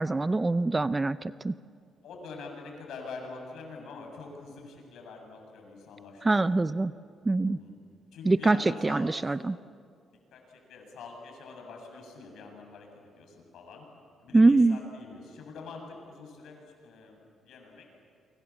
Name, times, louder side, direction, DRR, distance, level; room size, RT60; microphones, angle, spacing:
voice 1, 0.0-1.5 6.2-6.9 7.3-7.6 8.3-8.6 8.8-9.6 14.3-14.8, right 3 dB, 20° right, 15 dB, 0.6 m, -23 dB
voice 2, 2.0-6.8 7.4-7.8 8.1-9.3 10.3-13.8 14.2-17.9, left 4 dB, 75° left, 2 dB, 7.6 m, -45 dB
29.0 x 24.5 x 7.4 m, 2.2 s
cardioid pair, 90°, 0 cm